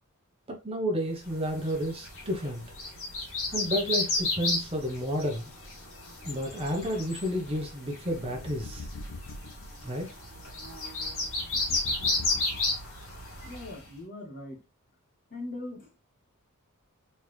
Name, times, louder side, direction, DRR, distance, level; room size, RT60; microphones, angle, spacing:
voice 1, 0.5-2.6 3.5-5.5 6.2-8.9 9.8-10.1, equal, 25° right, 1.1 m, -31 dB
sound 1, 1.4-13.8, left 2 dB, 65° left, 2.2 m, -33 dB
sound 2, 8.1-9.7 11.2-13.0, left 2 dB, 90° left, 0.6 m, -42 dB
voice 2, 13.4-14.6 15.3-16.0, left 2 dB, 40° left, 1.7 m, -40 dB
4.3 x 3.6 x 3.3 m
head